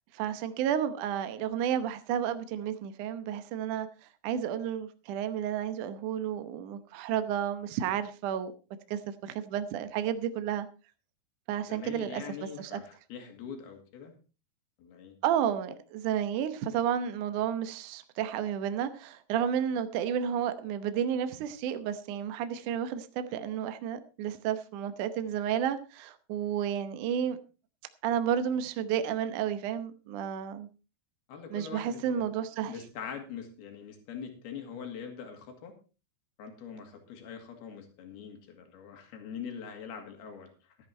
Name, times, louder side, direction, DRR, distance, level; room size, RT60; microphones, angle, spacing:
voice 1, 0.1-3.9 4.2-8.5 8.9-10.7 11.5-12.2 12.7-12.8 15.2-27.4 28.0-30.7 31.5-32.7, right 9 dB, 70° right, 2.1 m, -31 dB
voice 2, 11.6-14.1 14.8-15.2 31.3-32.3 32.7-35.8 36.4-40.8, left 7 dB, 85° left, 4.3 m, -43 dB
14.0 x 10.5 x 4.3 m
omnidirectional pair, 4.4 m